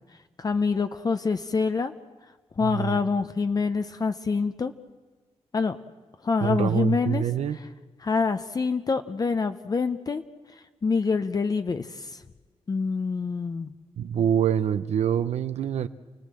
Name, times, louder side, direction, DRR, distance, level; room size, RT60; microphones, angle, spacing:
voice 1, 0.4-1.9 2.6-4.7 5.5-5.8 6.2-7.2 8.0-10.2 10.8-12.2 12.7-13.7, left 4 dB, 35° left, 9 dB, 0.7 m, -26 dB
voice 2, 2.6-3.0 6.4-7.6 14.0-15.9, right 9 dB, 80° right, 10 dB, 0.7 m, -25 dB
29.5 x 18.5 x 7.6 m, 1.4 s
wide cardioid pair, 120°, 11 cm